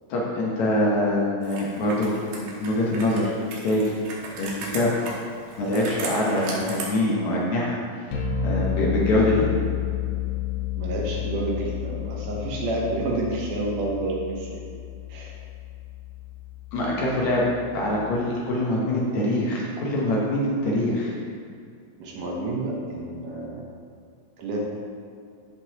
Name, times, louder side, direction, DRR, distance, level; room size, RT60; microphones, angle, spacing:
voice 1, 0.1-2.1 2.4-3.3 3.6-3.9 4.4-5.0 5.6-7.8 8.4-9.5 16.7-17.4 17.7-21.1, left 1 dB, 65° left, -4 dB, 2.1 m, -24 dB
Computer keyboard, 1.4-6.8, right 3 dB, 90° right, 2.9 m, -37 dB
sound 1, 8.1-18.1, left 10 dB, 85° left, 2.8 m, -31 dB
voice 2, 10.8-14.6 15.1-15.3 22.0-23.6 24.4-24.6, right 2 dB, 70° right, -2 dB, 2.4 m, -29 dB
13.5 x 5.3 x 2.9 m, 2.3 s
omnidirectional pair, 4.0 m